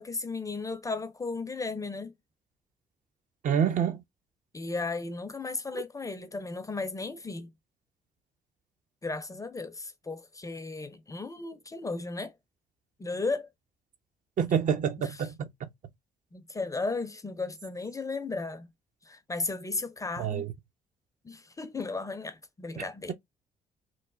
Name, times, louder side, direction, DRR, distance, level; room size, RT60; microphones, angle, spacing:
voice 1, 0.0-2.1 4.5-7.5 9.0-12.3 13.0-13.5 15.0-15.1 16.3-18.7 19.1-20.4 21.2-23.1, left 3 dB, 15° left, 0.5 m, -35 dB
voice 2, 3.4-4.0 14.4-15.5 20.2-20.5 22.8-23.1, right 8 dB, 45° right, 0.5 m, -28 dB
3.0 x 2.1 x 2.3 m
figure-of-eight pair, 45°, 19 cm